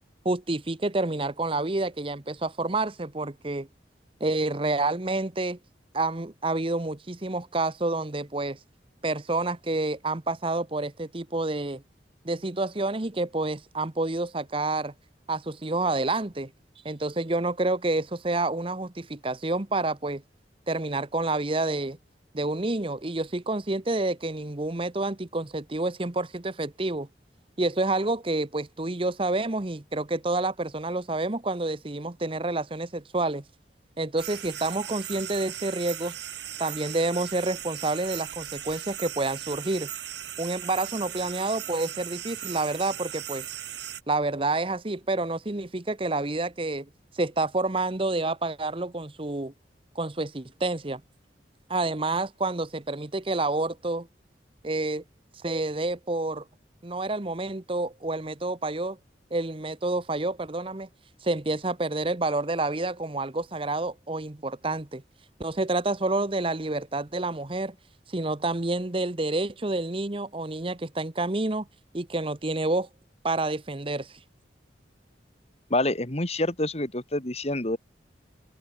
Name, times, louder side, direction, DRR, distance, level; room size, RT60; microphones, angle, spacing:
voice 1, 0.2-3.7 4.2-5.6 5.9-8.6 9.0-11.8 12.2-14.9 15.3-16.5 16.8-20.2 20.7-22.0 22.3-27.1 27.6-33.4 34.0-36.1 36.6-39.9 40.4-43.4 44.1-46.9 47.1-49.5 49.9-51.0 51.7-54.1 54.6-55.0 55.4-56.4 56.8-59.0 59.3-60.9 61.2-65.0 65.4-67.7 68.1-71.7 71.9-72.9 73.2-74.2, right 2 dB, 30° right, 1.0 m, -28 dB
sound 1, 34.2-44.0, right 11 dB, 75° right, 4.5 m, -38 dB
voice 2, 75.7-77.8, left 1 dB, 35° left, 2.6 m, -27 dB
head